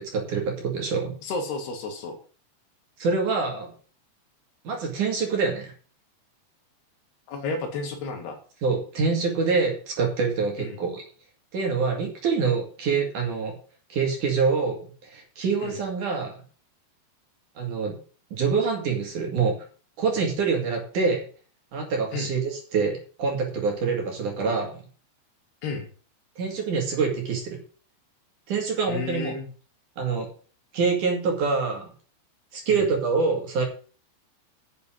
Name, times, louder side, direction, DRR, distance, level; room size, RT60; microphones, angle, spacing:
voice 1, 0.0-1.1 3.0-3.7 4.7-5.7 8.6-11.0 11.5-13.5 13.9-16.4 17.6-17.9 18.3-19.5 20.0-21.2 21.7-24.8 26.4-27.6 28.5-29.3 30.0-30.3 30.7-31.9 32.5-33.6, right 5 dB, 50° right, 1 dB, 3.6 m, -25 dB
voice 2, 1.2-2.2 7.3-8.4 10.6-10.8 15.6-15.8 22.1-22.3 25.6-25.9 28.9-29.5 32.7-32.9, left 3 dB, 65° left, 3 dB, 4.0 m, -32 dB
9.7 x 7.0 x 7.7 m, 0.41 s
omnidirectional pair, 5.1 m